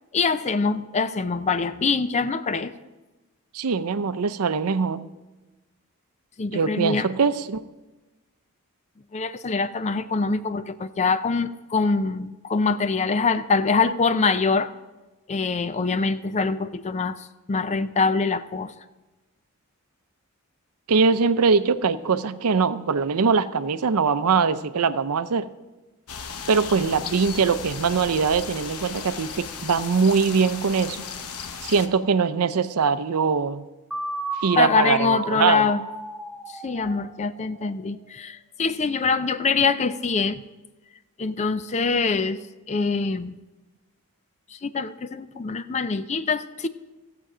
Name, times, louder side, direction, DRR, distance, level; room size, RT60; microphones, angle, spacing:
voice 1, 0.1-2.7 6.4-7.1 9.1-14.7 15.3-17.2 17.5-18.7 34.6-35.8 36.6-40.4 41.2-42.4 42.7-43.3 44.6-46.7, left 4 dB, 30° left, 13 dB, 0.4 m, -24 dB
voice 2, 3.5-5.0 6.5-7.6 20.9-25.5 26.5-31.0 31.6-33.6 34.4-35.7, right 5 dB, 80° right, 13 dB, 0.6 m, -22 dB
sound 1, 26.1-31.9, left 6 dB, 70° left, 0.9 m, -36 dB
sound 2, 33.9-37.8, right 1 dB, 5° right, 1.0 m, -34 dB
16.0 x 7.7 x 5.0 m, 1.1 s
head